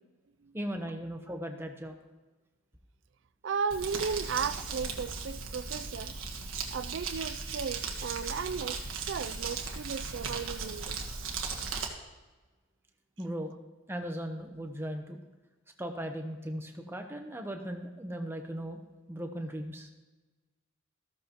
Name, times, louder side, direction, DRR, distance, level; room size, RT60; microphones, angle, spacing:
voice 1, 0.5-2.0 13.2-13.5 13.9-15.2 15.8-18.8 19.1-19.9, equal, 10° right, 0.9 m, -37 dB
voice 2, 3.4-6.2 6.7-11.0, right 5 dB, 55° right, 0.4 m, -35 dB
Crumpling crinkling, 3.7-11.9, right 5 dB, 70° right, 1.5 m, -37 dB
13.5 x 13.0 x 3.0 m
head